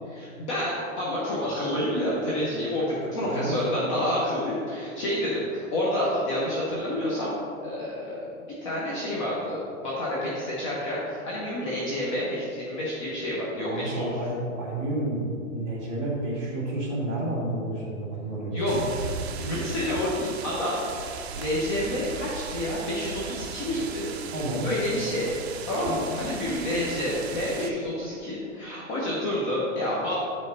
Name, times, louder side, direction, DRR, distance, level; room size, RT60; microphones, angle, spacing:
voice 1, 0.1-7.3 7.6-8.2 8.6-14.1 18.5-18.7 19.4-21.1 21.4-24.1 24.6-25.3 25.6-30.3, left 1 dB, 25° left, -6 dB, 0.9 m, -29 dB
voice 2, 3.0-3.5 13.6-15.2 15.5-18.8 24.3-24.7 25.9-26.3, right 1 dB, 20° right, -8 dB, 2.0 m, -31 dB
sound 1, 18.6-27.7, right 5 dB, 50° right, 0.6 m, -37 dB
9.4 x 5.4 x 4.0 m, 2.5 s
hypercardioid pair, 170°, 41 cm